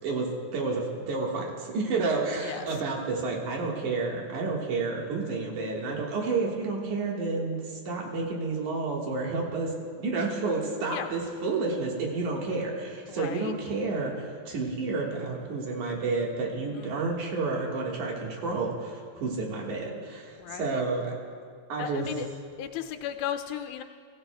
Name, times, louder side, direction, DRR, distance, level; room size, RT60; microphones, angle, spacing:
voice 1, 0.0-21.1 21.7-22.1, right 3 dB, 85° right, -2 dB, 3.1 m, -30 dB
voice 2, 13.1-13.5 16.8-17.1 20.4-20.8 21.8-22.3 22.6-23.8, left 10 dB, 90° left, 7 dB, 2.0 m, -35 dB
21.5 x 15.0 x 2.3 m, 2.1 s
omnidirectional pair, 3.4 m